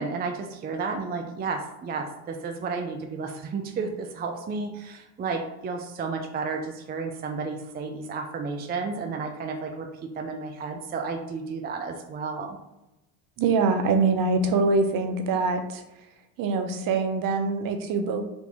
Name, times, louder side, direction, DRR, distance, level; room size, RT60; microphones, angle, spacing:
voice 1, 0.0-12.6, right 4 dB, 20° right, 4 dB, 0.4 m, -32 dB
voice 2, 13.4-15.8 16.4-18.2, right 4 dB, 50° right, 6 dB, 0.8 m, -24 dB
4.4 x 2.8 x 3.4 m, 0.96 s
supercardioid pair, 80°, 44 cm